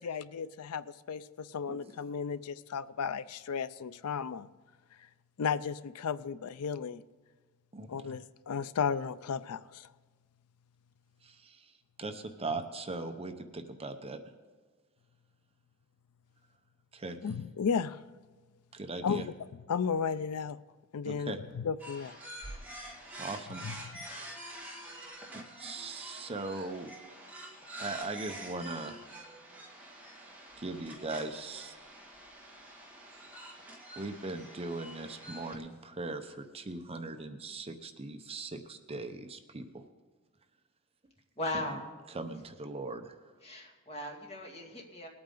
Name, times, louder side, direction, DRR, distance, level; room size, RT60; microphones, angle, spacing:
voice 1, 0.0-4.5 5.4-7.0 7.9-9.9 17.2-18.0 19.0-19.3 19.7-20.6 20.9-22.2 23.6-23.7, left 6 dB, 75° left, 15 dB, 0.5 m, -34 dB
voice 2, 11.2-11.7 12.0-14.2 16.9-17.2 18.7-19.3 21.0-21.4 23.2-23.6 24.0-24.7 25.3-26.9 27.8-29.0 30.6-31.8 34.0-39.8 41.7-41.8 42.1-43.2, right 3 dB, 25° right, 7 dB, 0.7 m, -40 dB
sound 1, 21.8-35.6, right 1 dB, 5° right, 2.0 m, -47 dB
voice 3, 41.4-41.9 43.4-45.1, left 1 dB, 30° left, 0 dB, 2.2 m, -38 dB
20.0 x 8.7 x 3.8 m, 1.4 s
head